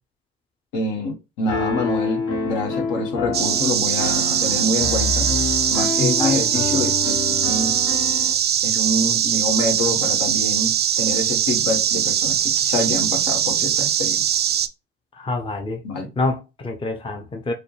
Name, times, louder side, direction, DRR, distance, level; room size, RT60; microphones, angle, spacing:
voice 1, 0.7-5.3 5.7-7.8 8.6-14.2 15.8-16.1, left 2 dB, 65° left, 1.5 m, -26 dB
Piano, 1.5-8.3, left 4 dB, 45° left, 1.3 m, -27 dB
sound 1, 3.3-14.7, right 9 dB, 30° right, 0.5 m, -21 dB
voice 2, 6.0-6.5 15.2-15.8 16.2-17.5, left 2 dB, 15° left, 0.7 m, -26 dB
4.9 x 2.2 x 3.2 m
hypercardioid pair, 60°, 32 cm